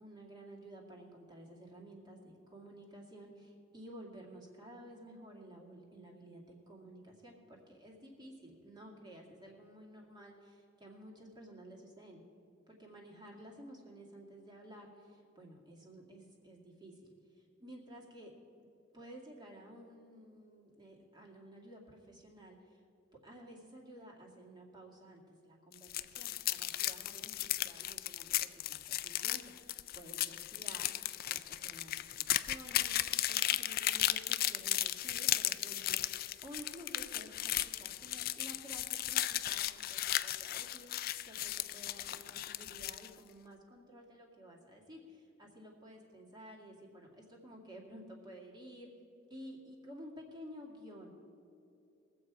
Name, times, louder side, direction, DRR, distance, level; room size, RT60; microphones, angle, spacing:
voice 1, 0.0-12.2 12.7-18.3 18.9-22.8 23.2-30.9 31.3-48.9 49.3-51.1, equal, 20° right, -1 dB, 2.2 m, -53 dB
sound 1, 25.7-43.1, left 14 dB, 50° left, 0.4 m, -35 dB
21.5 x 7.8 x 4.8 m, 2.9 s
head